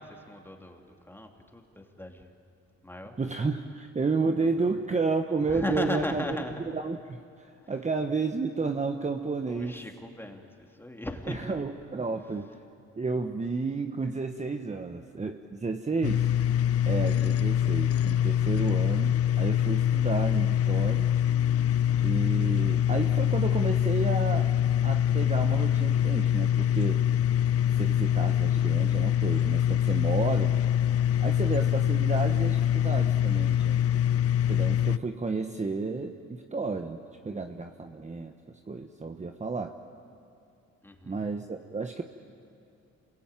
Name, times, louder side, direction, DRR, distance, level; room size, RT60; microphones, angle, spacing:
voice 1, 0.0-2.3 2.8-3.2 4.4-4.5 5.5-6.7 7.6-7.7 9.5-10.4 10.7-11.6 40.8-41.2, left 1 dB, 5° left, 3 dB, 2.7 m, -37 dB
voice 2, 3.2-6.4 6.7-9.8 11.3-12.5 13.0-16.3 16.8-21.1 22.0-24.5 24.8-27.0 27.7-30.6 31.2-33.8 34.5-37.0 37.2-39.8 41.0-42.0, right 4 dB, 25° right, 6 dB, 1.2 m, -31 dB
sound 1, 16.0-35.0, left 10 dB, 50° left, 0.6 m, -24 dB
27.5 x 22.0 x 9.1 m, 2.6 s
cardioid pair, 90°, 30 cm